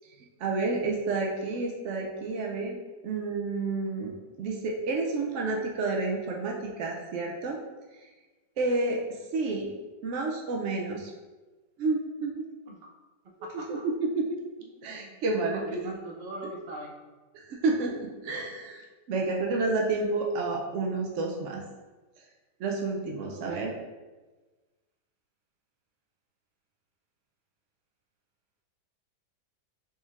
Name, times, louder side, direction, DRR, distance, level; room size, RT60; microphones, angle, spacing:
voice 1, 0.4-2.8 3.0-4.1 4.4-7.6 8.6-9.0 9.3-9.7 10.0-11.1 11.8-12.4 13.5-14.3 14.8-15.9 17.5-21.6 22.6-23.7, right 3 dB, 90° right, 0 dB, 0.6 m, -30 dB
voice 2, 13.4-13.8 14.8-15.2 15.5-16.9 23.3-23.6, right 1 dB, 50° right, -1 dB, 0.7 m, -42 dB
4.3 x 4.2 x 2.4 m, 1.3 s
omnidirectional pair, 1.8 m